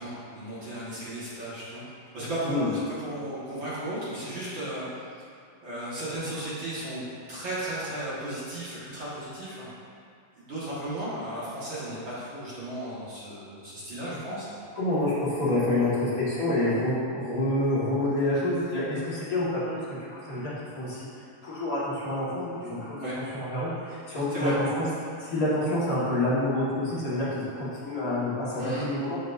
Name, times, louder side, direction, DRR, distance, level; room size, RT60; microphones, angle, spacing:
voice 1, 0.0-4.9 5.6-7.0 7.3-9.7 10.4-14.5 23.0-23.2 24.3-24.5 28.6-28.9, right 1 dB, 45° right, -10 dB, 1.8 m, -35 dB
voice 2, 14.7-19.8 20.1-21.1 21.4-24.8 25.2-29.2, left 1 dB, 40° left, -9 dB, 1.2 m, -28 dB
12.5 x 5.1 x 2.6 m, 2.3 s
omnidirectional pair, 4.3 m